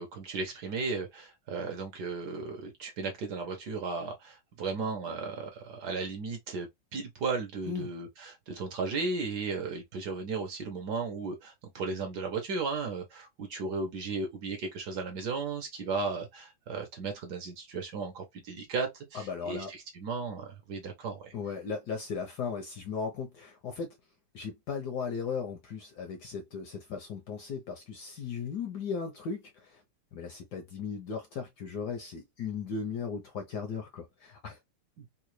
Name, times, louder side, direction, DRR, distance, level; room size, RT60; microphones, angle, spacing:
voice 1, 0.0-21.3 35.0-35.1, right 4 dB, 65° right, 1.2 m, -35 dB
voice 2, 19.1-19.7 21.3-24.0 24.3-29.8 30.1-34.6, left 5 dB, 70° left, 1.0 m, -37 dB
3.8 x 2.3 x 3.0 m
omnidirectional pair, 2.4 m